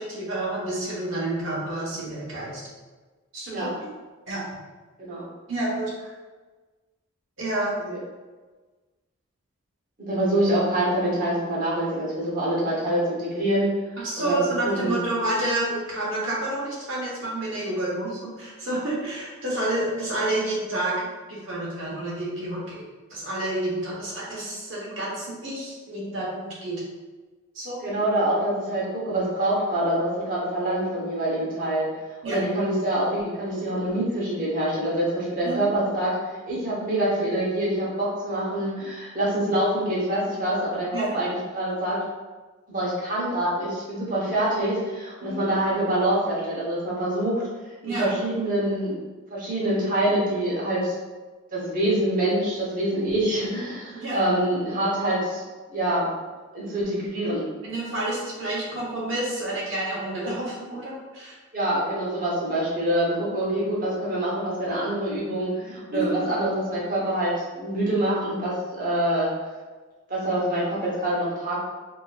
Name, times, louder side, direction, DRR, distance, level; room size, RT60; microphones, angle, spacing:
voice 1, 0.0-2.6 3.3-3.7 4.3-4.4 5.5-6.1 7.4-7.8 14.0-20.9 21.3-22.8 23.1-26.8 27.5-28.0 32.2-32.4 35.4-35.7 40.9-41.1 45.2-45.4 47.8-48.1 53.9-54.2 57.6-61.4 65.9-66.3, right 1 dB, 65° right, -5 dB, 1.2 m, -29 dB
voice 2, 10.0-13.7 14.2-14.4 14.6-15.0 27.8-36.1 36.5-42.0 42.7-47.4 47.9-48.9 49.3-51.0 51.5-55.4 55.7-56.1 56.5-57.5 61.5-69.3 70.1-71.6, right 1 dB, 40° right, -6 dB, 1.2 m, -25 dB
4.3 x 3.0 x 2.4 m, 1.3 s
head